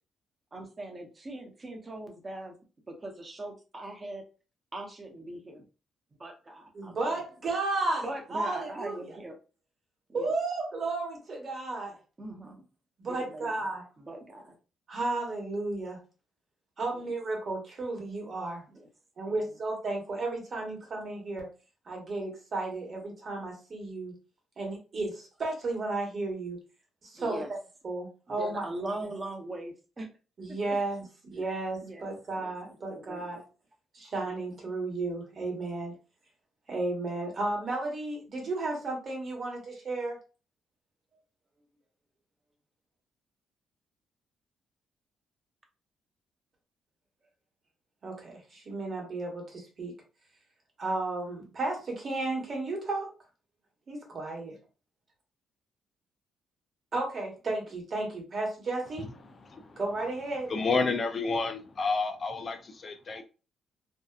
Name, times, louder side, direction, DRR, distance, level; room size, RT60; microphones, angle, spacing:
voice 1, 0.5-2.5 2.9-4.2 4.7-5.7 6.2-7.2 8.0-9.4 10.1-10.3 12.2-12.6 13.1-13.5 14.0-14.5 16.9-17.0 18.7-18.9 19.2-19.4 27.1-27.5 28.3-30.1 30.5-30.8 31.4-31.5 31.8-32.1 32.4-33.2 34.0-34.3, right 1 dB, 30° right, 3 dB, 0.7 m, -41 dB
voice 2, 6.7-8.0 8.3-9.0 10.1-11.9 13.0-13.8 14.9-16.0 16.8-18.6 19.2-21.5 21.9-24.1 24.6-26.6 27.0-27.4 27.8-28.7 30.4-33.4 33.9-35.9 36.7-40.2 48.0-49.9 50.8-53.1 53.9-54.5 56.9-59.1 59.8-60.5, right 2 dB, 45° right, 0 dB, 1.1 m, -33 dB
voice 3, 59.5-59.8 60.5-63.2, left 4 dB, 40° left, 7 dB, 0.4 m, -30 dB
2.7 x 2.2 x 2.3 m, 0.33 s
cardioid pair, 90°, 0 cm